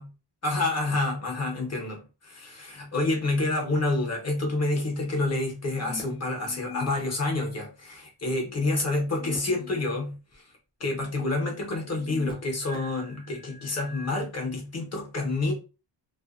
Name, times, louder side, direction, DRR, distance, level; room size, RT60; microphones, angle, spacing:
voice 1, 0.4-10.4 10.8-15.5, left 2 dB, 35° left, 0.9 m, -28 dB
sound 1, 5.7-7.0 9.0-10.0 10.3-10.4 11.8-14.1, left 4 dB, 10° left, 0.4 m, -42 dB
2.5 x 2.1 x 2.4 m
wide cardioid pair, 130°, 43 cm